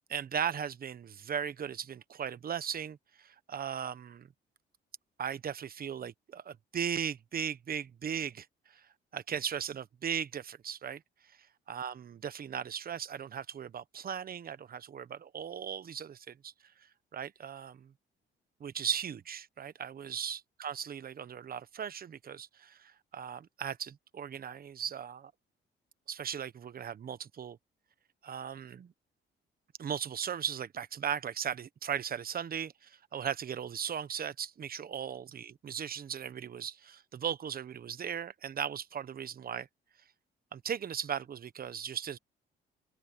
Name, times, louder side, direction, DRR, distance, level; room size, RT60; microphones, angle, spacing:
voice 1, 0.1-4.3 5.2-11.0 11.3-11.4 11.7-16.7 17.1-17.9 18.6-25.3 26.1-27.6 28.2-28.9 29.8-39.7 40.5-42.2, right 8 dB, 50° right, 1.2 m, -37 dB
open air
cardioid pair, 90°, 20 cm